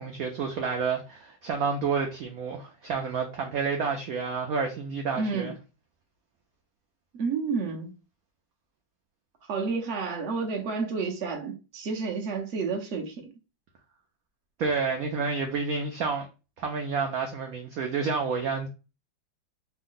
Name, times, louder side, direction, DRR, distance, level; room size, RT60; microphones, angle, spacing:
voice 1, 0.0-5.5 14.6-16.3 16.6-18.7, right 5 dB, 85° right, 0.7 m, -29 dB
voice 2, 5.2-5.5 7.1-7.9 9.4-13.3, right 4 dB, 55° right, 0.8 m, -30 dB
3.5 x 2.1 x 3.7 m
omnidirectional pair, 2.1 m